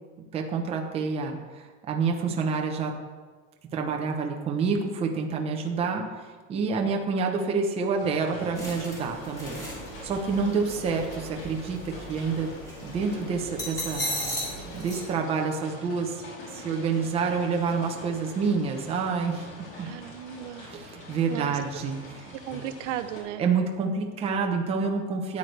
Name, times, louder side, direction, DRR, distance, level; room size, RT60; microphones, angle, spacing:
voice 1, 0.3-2.9 3.7-9.6 10.0-11.8 12.1-12.5 12.8-14.3 14.6-16.2 16.5-19.5 19.8-19.9 20.6-22.6 23.4-25.4, right 5 dB, 15° right, 2 dB, 0.7 m, -28 dB
sound 1, 8.0-23.2, left 1 dB, 45° left, 3.4 m, -44 dB
sound 2, 8.6-15.0, equal, 10° left, 2.4 m, -37 dB
voice 2, 19.8-20.7 21.3-21.6 22.5-23.4, right 11 dB, 65° right, 10 dB, 0.7 m, -35 dB
13.0 x 9.7 x 3.3 m, 1.4 s
supercardioid pair, 175°, 40 cm